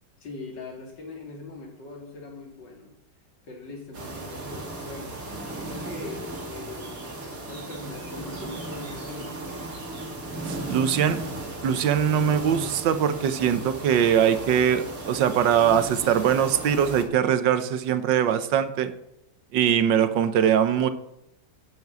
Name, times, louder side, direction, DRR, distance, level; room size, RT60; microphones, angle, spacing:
voice 1, 0.2-2.9 3.4-5.2 5.6-9.4, left 3 dB, 75° left, 2 dB, 3.2 m, -41 dB
sound 1, 3.9-17.0, right 2 dB, 50° right, 2.8 m, -36 dB
voice 2, 10.5-11.2 11.6-18.9 19.5-20.9, right 9 dB, 90° right, 11 dB, 1.6 m, -22 dB
10.5 x 7.8 x 8.1 m, 0.82 s
omnidirectional pair, 1.9 m